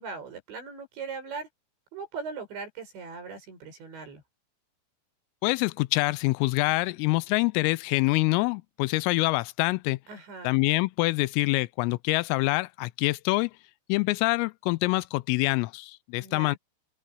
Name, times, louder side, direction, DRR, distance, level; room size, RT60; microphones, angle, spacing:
voice 1, 0.0-1.5 1.9-4.2 10.1-10.5 16.2-16.6, right 4 dB, 60° right, 9.5 m, -39 dB
voice 2, 5.4-10.0 10.4-13.5 13.9-16.6, left 23 dB, 85° left, 3.3 m, -25 dB
open air
omnidirectional pair, 5.9 m